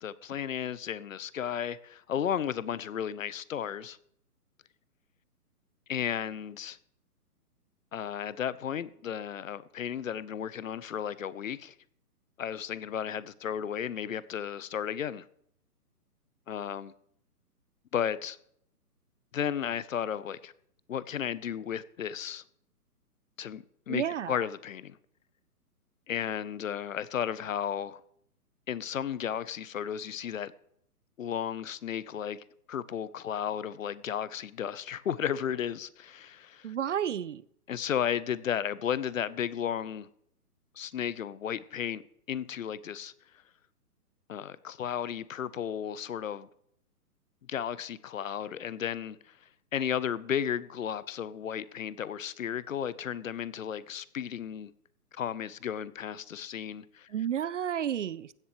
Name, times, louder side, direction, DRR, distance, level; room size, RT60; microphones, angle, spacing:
voice 1, 0.0-4.0 5.9-6.8 7.9-11.7 12.4-15.2 16.5-16.9 17.9-18.4 19.3-20.5 20.9-22.4 23.4-25.0 26.1-28.0 28.7-30.5 31.2-36.8 37.7-40.1 40.8-42.0 42.3-43.1 44.3-46.5 47.5-49.2 49.7-54.7 55.1-57.1, left 9 dB, 55° left, 0.9 m, -34 dB
voice 2, 23.9-24.4 36.6-37.4 57.1-58.3, right 9 dB, 50° right, 0.6 m, -31 dB
16.0 x 11.0 x 3.1 m
figure-of-eight pair, 135°, 47 cm